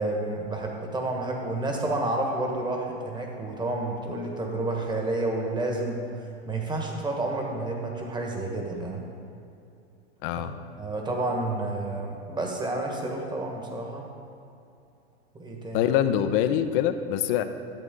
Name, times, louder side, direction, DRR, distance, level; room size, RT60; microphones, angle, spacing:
voice 1, 0.0-6.0 6.4-9.0 10.8-14.0 15.4-15.9, right 2 dB, 15° right, 1 dB, 1.5 m, -30 dB
voice 2, 10.2-10.6 15.7-17.4, left 10 dB, 55° left, 9 dB, 0.8 m, -24 dB
12.5 x 7.9 x 3.8 m, 2.6 s
hypercardioid pair, 110°, 33 cm